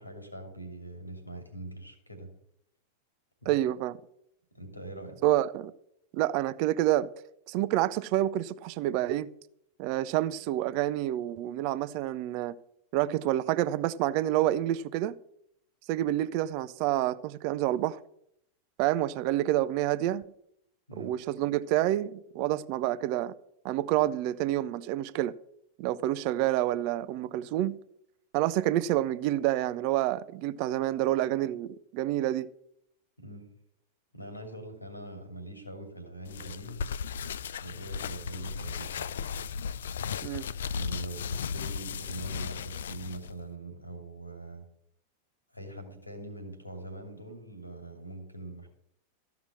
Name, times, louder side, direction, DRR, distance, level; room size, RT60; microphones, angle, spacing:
voice 1, 0.0-2.3 3.4-3.5 4.5-5.2 20.9-21.2 33.2-33.5 34.1-36.8 37.6-39.2 40.7-44.6 45.5-48.7, right 1 dB, 85° left, 2.6 m, -43 dB
voice 2, 3.5-4.0 5.2-5.7 6.1-7.1 7.5-9.3 9.8-12.6 12.9-15.1 15.9-18.0 18.8-20.2 21.0-23.3 23.6-25.3 25.8-27.8 28.3-32.5 40.2-40.5, right 14 dB, 45° right, 0.6 m, -28 dB
sound 1, 36.2-43.3, left 6 dB, 65° left, 0.3 m, -36 dB
14.0 x 5.9 x 7.3 m
figure-of-eight pair, 90°, 0 cm